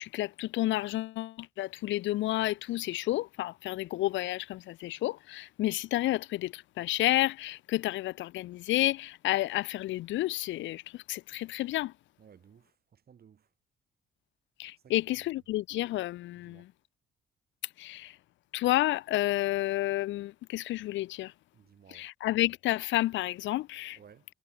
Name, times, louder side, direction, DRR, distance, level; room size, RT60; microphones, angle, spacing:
voice 1, 0.0-11.9 14.6-16.7 17.8-18.2 18.5-21.3 21.9-24.0, left 16 dB, 70° left, 0.4 m, -30 dB
voice 2, 12.2-13.5 14.8-14.9 16.4-16.7 21.5-22.1 24.0-24.2, right 8 dB, 50° right, 2.9 m, -57 dB
cardioid pair, 90°, 20 cm